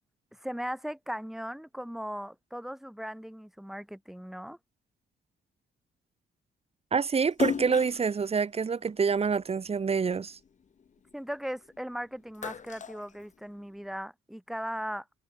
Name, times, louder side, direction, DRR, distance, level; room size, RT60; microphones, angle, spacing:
voice 1, 0.3-4.6 11.1-15.1, equal, ahead, 6.8 m, -38 dB
voice 2, 6.9-10.4, right 5 dB, 35° right, 3.7 m, -27 dB
Splash splatter, 7.3-9.9 10.3-11.8 12.1-13.8, left 6 dB, 40° left, 7.9 m, -36 dB
cardioid pair, 120°, 18 cm